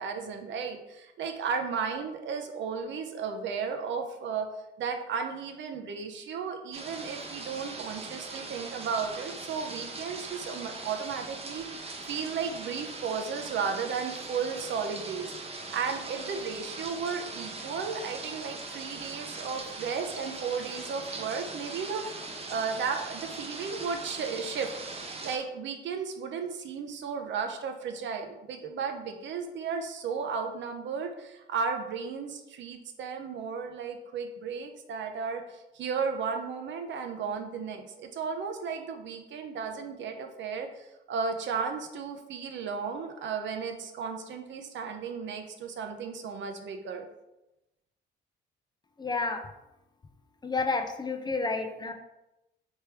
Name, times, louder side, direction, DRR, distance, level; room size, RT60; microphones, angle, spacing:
voice 1, 0.0-4.5 4.8-22.2 22.5-24.7 25.2-47.1, right 5 dB, 70° right, 5 dB, 0.7 m, -34 dB
sound 1, 6.7-25.4, right 3 dB, 30° right, 0.8 m, -41 dB
voice 2, 49.0-49.4 50.4-51.9, left 3 dB, 20° left, 6 dB, 0.5 m, -30 dB
3.4 x 3.3 x 4.4 m, 0.94 s
cardioid pair, 90°, 20 cm